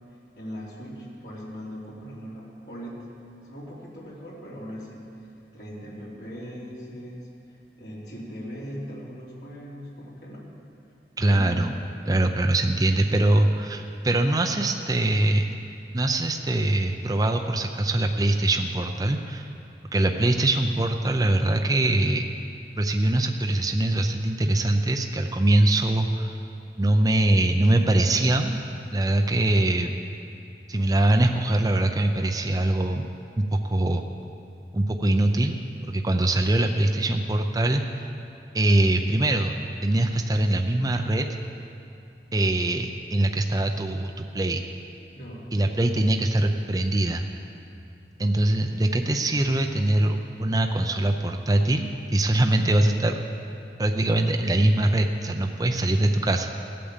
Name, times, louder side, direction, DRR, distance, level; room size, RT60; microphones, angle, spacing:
voice 1, 0.3-3.1 3.5-10.5 11.2-11.8 36.6-36.8 45.1-45.5, equal, 80° left, -6 dB, 3.3 m, -39 dB
voice 2, 11.2-11.8 12.1-15.4 15.9-19.5 19.9-22.2 22.8-26.3 26.8-28.6 28.9-29.9 30.7-33.1 33.4-34.0 34.7-38.0 38.5-39.6 39.8-41.3 42.3-44.6 45.5-47.2 48.2-53.2 53.8-56.5, right 1 dB, 20° right, 4 dB, 0.5 m, -23 dB
15.5 x 8.5 x 7.2 m, 2.7 s
head